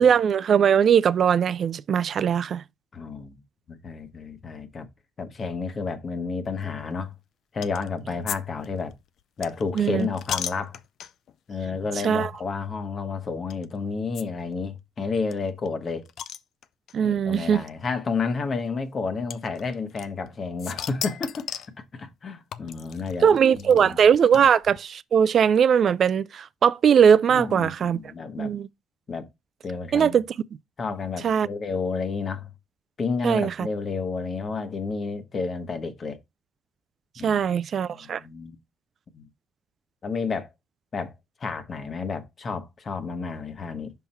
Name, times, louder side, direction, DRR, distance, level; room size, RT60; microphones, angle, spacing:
voice 1, 0.0-2.6 9.8-10.1 12.0-12.3 16.9-17.6 23.2-28.0 28.4-28.7 29.9-30.2 31.2-31.5 33.2-33.7 37.2-38.2, right 7 dB, 55° right, 0.3 m, -20 dB
voice 2, 2.9-3.4 3.7-4.9 5.2-7.1 7.5-9.0 9.4-10.8 11.5-16.1 17.0-24.0 24.3-24.4 27.3-28.5 29.1-29.3 29.6-30.2 30.8-32.5 33.0-36.2 37.2-37.4 37.9-38.6 39.1-39.3 40.0-40.5 40.9-41.1 41.4-43.9, left 4 dB, 45° left, 1.2 m, -31 dB
sound 1, 7.6-7.9 8.3-8.4 8.6-11.3 12.0-12.1 12.4-12.5 13.5-13.6 14.1-14.2 14.5-14.6 14.8-14.9 15.3-17.0 17.9-18.0 19.3-20.3 20.6-21.8 22.5-24.8, left 9 dB, 70° left, 0.4 m, -36 dB
5.7 x 3.7 x 4.3 m
supercardioid pair, 70°, 0 cm